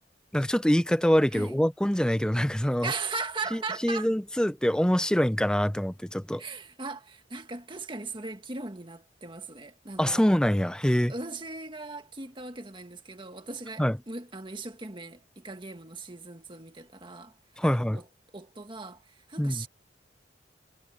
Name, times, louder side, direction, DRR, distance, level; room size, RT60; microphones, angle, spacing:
voice 1, 0.3-2.9 3.5-6.4 10.0-11.1 13.8-14.0 17.6-18.0 19.4-19.6, equal, 5° left, 0.6 m, -25 dB
voice 2, 2.8-4.1 6.4-10.2 11.1-17.3 17.6-18.1 18.3-19.7, right 3 dB, 25° right, 1.8 m, -38 dB
head